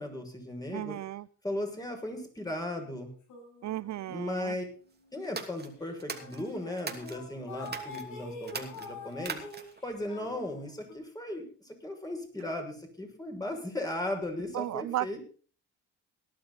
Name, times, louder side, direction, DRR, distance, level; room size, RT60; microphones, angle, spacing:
voice 1, 0.0-1.0 1.4-3.1 4.1-4.6 5.1-9.4 9.8-15.2, left 1 dB, 10° left, 3 dB, 6.2 m, -37 dB
voice 2, 0.7-1.3 3.6-4.6 14.5-15.1, right 14 dB, 65° right, 21 dB, 0.7 m, -34 dB
sound 1, 3.3-4.7 5.0-5.3 5.9-6.0 6.2-10.9, left 2 dB, 80° left, 7.6 m, -45 dB
sound 2, 5.2-7.2 7.6-8.0 8.4-9.8, right 5 dB, 35° right, 2.9 m, -40 dB
18.5 x 11.5 x 4.2 m, 0.42 s
cardioid pair, 90°, 30 cm